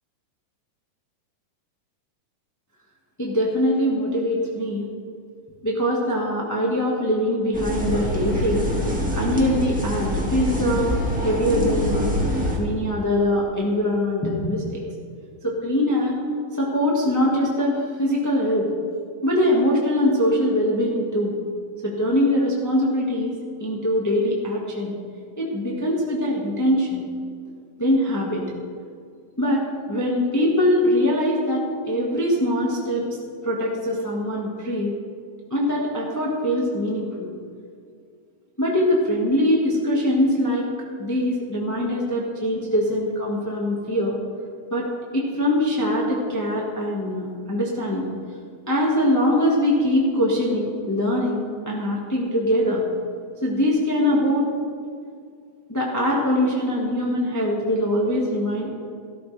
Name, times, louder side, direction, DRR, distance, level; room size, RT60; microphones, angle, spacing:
voice 1, 3.2-4.9 5.6-8.7 9.1-12.0 12.6-14.8 15.4-16.2 16.6-18.7 19.2-21.3 21.8-23.3 23.6-25.0 25.4-27.0 27.8-28.4 29.4-33.1 33.4-34.9 35.5-37.3 38.6-40.7 41.0-44.2 44.7-44.9 45.1-48.1 48.7-52.8 53.4-54.5 55.7-58.7, left 1 dB, 15° left, -4 dB, 0.7 m, -22 dB
sound 1, 7.5-12.6, equal, 5° right, 1.2 m, -25 dB
16.5 x 13.0 x 3.4 m, 2.2 s
omnidirectional pair, 3.5 m